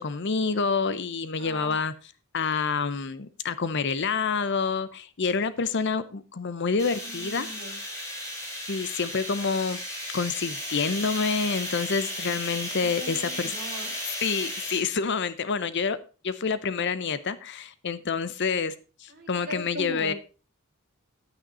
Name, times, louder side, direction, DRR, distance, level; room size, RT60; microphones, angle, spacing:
voice 1, 0.0-1.9 2.3-7.5 8.7-9.8 10.1-13.5 14.2-16.0 16.2-18.7 19.0-20.1, left 5 dB, 50° left, 14 dB, 0.7 m, -28 dB
voice 2, 1.4-1.8 7.0-7.8 12.8-14.0 19.1-20.1, right 1 dB, 45° right, 2 dB, 3.1 m, -40 dB
sound 1, 6.8-14.8, left 1 dB, 15° left, 3.7 m, -35 dB
9.7 x 8.8 x 4.1 m, 0.34 s
head